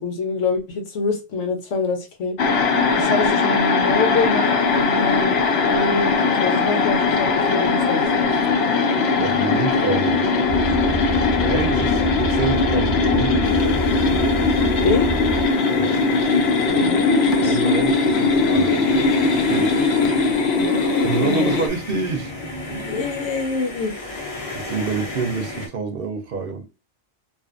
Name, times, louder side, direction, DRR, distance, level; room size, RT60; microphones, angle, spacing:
voice 1, 0.0-2.4 2.9-5.4 5.7-8.3 14.8-15.1 16.7-17.6 20.4-21.5 22.7-23.9, left 3 dB, 90° left, 1.2 m, -25 dB
sound 1, 2.4-21.7, left 4 dB, 65° left, 0.8 m, -20 dB
voice 2, 9.2-10.2 11.4-13.6 15.7-15.9 17.4-19.2 19.5-19.7 21.0-22.3 24.5-26.6, right 4 dB, 60° right, 0.7 m, -27 dB
sound 2, 10.5-15.5, right 2 dB, 35° right, 0.4 m, -28 dB
sound 3, 13.4-25.7, left 1 dB, 35° left, 0.6 m, -34 dB
2.6 x 2.4 x 2.3 m
omnidirectional pair, 1.2 m